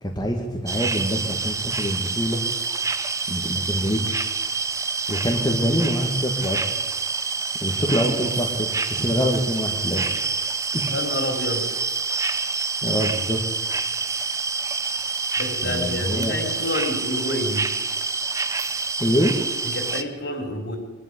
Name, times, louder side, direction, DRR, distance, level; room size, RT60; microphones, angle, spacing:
voice 1, 0.0-2.4 3.3-4.3 5.1-6.7 7.6-10.2 10.7-10.9 12.8-13.4 15.6-16.3 19.0-19.3, equal, 20° left, 0 dB, 2.0 m, -25 dB
sound 1, 0.7-20.0, right 4 dB, 15° right, 0.8 m, -27 dB
voice 2, 10.9-11.6 15.4-17.6 19.7-20.8, left 1 dB, 60° left, 4 dB, 4.3 m, -28 dB
23.0 x 11.5 x 10.0 m, 1.3 s
head